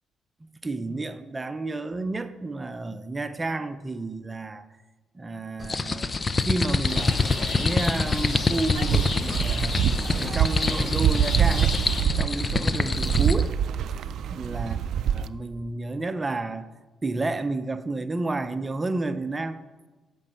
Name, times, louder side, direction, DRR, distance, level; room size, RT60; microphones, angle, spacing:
voice 1, 0.4-4.7 5.1-6.1 6.4-9.8 10.1-11.8 12.2-13.6 14.3-14.8 15.1-16.7 17.0-19.6, right 2 dB, 20° right, 0.7 m, -31 dB
sound 1, 5.6-13.5, left 4 dB, 30° left, 0.6 m, -26 dB
Rain, 6.8-12.0, left 2 dB, 50° left, 2.4 m, -34 dB
sound 2, 8.7-15.3, right 9 dB, 70° right, 0.5 m, -25 dB
13.5 x 5.4 x 7.7 m
cardioid pair, 90°, 0 cm